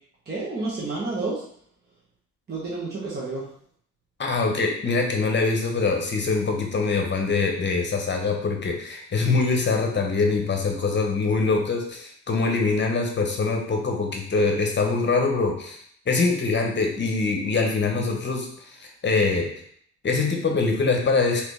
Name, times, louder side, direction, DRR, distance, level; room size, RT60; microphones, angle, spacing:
voice 1, 0.3-1.4 2.5-3.4, right 3 dB, 35° right, -6 dB, 1.1 m, -30 dB
voice 2, 4.2-15.8 16.1-19.5 20.0-21.4, left 4 dB, 35° left, 2 dB, 0.9 m, -24 dB
3.9 x 2.9 x 3.3 m, 0.63 s
cardioid pair, 90°, 30 cm